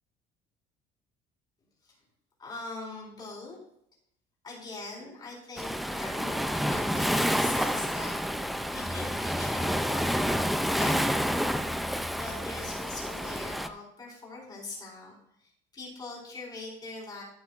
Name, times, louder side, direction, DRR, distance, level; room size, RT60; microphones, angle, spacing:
voice 1, 2.4-3.6 4.4-8.5 8.7-11.5 12.1-15.1 15.4-17.2, left 3 dB, 20° left, -4 dB, 4.4 m, -42 dB
Waves surf, 5.6-13.7, equal, ahead, 0.3 m, -29 dB
13.0 x 8.9 x 2.5 m, 0.75 s
cardioid pair, 155°, 19 cm